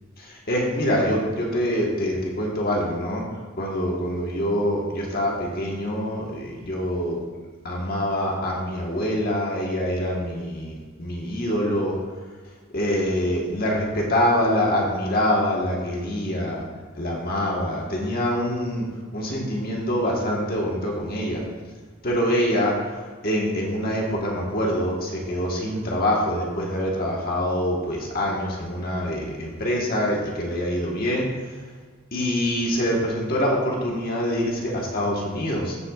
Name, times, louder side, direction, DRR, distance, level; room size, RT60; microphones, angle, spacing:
voice 1, 0.2-3.2 3.6-7.2 7.6-12.0 12.7-16.6 17.0-18.9 19.1-21.4 22.0-31.2 32.1-35.8, equal, 45° left, -2 dB, 1.4 m, -25 dB
14.0 x 7.7 x 2.4 m, 1.5 s
head